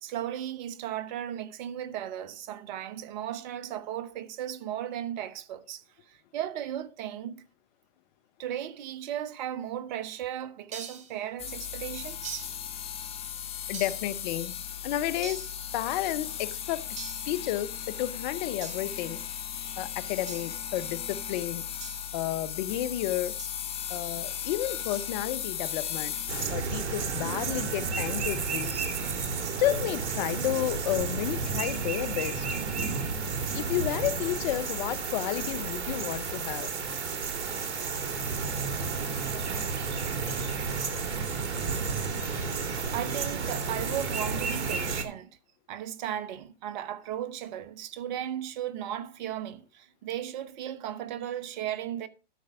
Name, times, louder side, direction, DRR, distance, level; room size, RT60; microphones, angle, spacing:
voice 1, 0.0-7.4 8.4-12.5 42.3-42.7 42.9-45.3 45.7-52.1, right 11 dB, 40° right, 1.2 m, -36 dB
sound 1, 10.7-11.2 12.2-12.7 13.7-14.1 15.2-15.6 17.0-17.4 18.6-19.0 20.3-20.6 21.8-22.1 23.4-23.7 24.9-25.2, right 5 dB, 20° right, 2.0 m, -43 dB
sound 2, 11.4-26.5, left 9 dB, 15° left, 1.2 m, -36 dB
voice 2, 13.7-14.5 14.8-15.4 15.7-16.9 17.3-19.2 19.8-21.7 22.1-23.4 23.9-26.1 26.5-28.8 29.6-32.5 33.5-36.7, left 13 dB, 35° left, 0.9 m, -31 dB
sound 3, 26.3-45.0, right 4 dB, 65° right, 2.6 m, -32 dB
13.0 x 5.6 x 4.9 m
hypercardioid pair, 130°, 37 cm